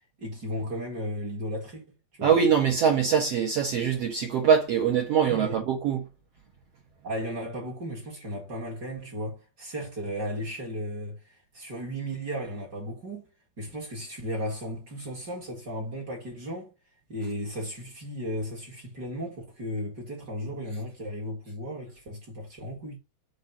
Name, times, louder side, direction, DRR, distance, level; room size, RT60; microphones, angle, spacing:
voice 1, 0.2-1.9 2.2-2.4 5.3-5.6 7.0-13.3 13.6-16.7 17.1-23.0, equal, 40° right, 1.8 m, -35 dB
voice 2, 2.2-6.1, right 7 dB, 60° right, 1.7 m, -23 dB
8.1 x 2.8 x 5.9 m
omnidirectional pair, 4.0 m